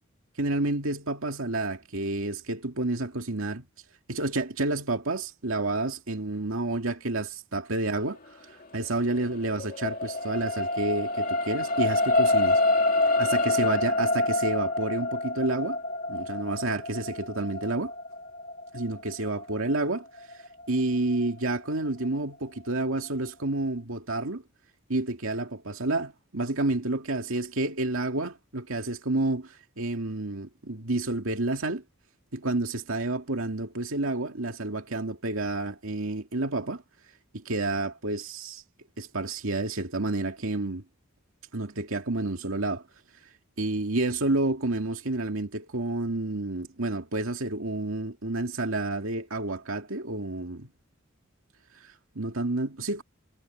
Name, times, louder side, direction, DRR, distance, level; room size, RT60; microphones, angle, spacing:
voice 1, 0.4-3.6 4.1-12.6 13.2-15.8 16.1-17.9 18.7-20.1 20.4-24.4 24.9-31.8 32.3-36.8 37.3-38.6 39.0-40.8 41.5-42.8 43.6-50.7 51.8-53.0, right 2 dB, 70° right, 2.3 m, -30 dB
sound 1, 9.0-21.5 22.0-22.2, left 2 dB, 45° left, 2.3 m, -27 dB
head